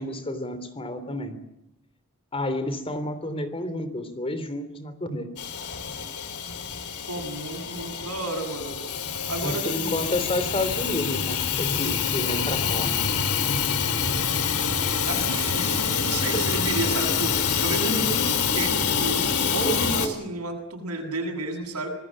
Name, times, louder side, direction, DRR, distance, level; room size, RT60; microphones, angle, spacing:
voice 1, 0.0-1.4 2.3-5.3 9.4-13.0, left 1 dB, 25° left, 11 dB, 3.2 m, -30 dB
Hiss / Toilet flush / Trickle dribble, 5.4-20.1, left 7 dB, 75° left, 3.1 m, -26 dB
voice 2, 7.1-8.8 9.3-10.0 15.1-19.2 19.5-21.9, right 2 dB, 90° right, 4 dB, 7.6 m, -31 dB
26.5 x 20.0 x 7.5 m, 0.86 s
head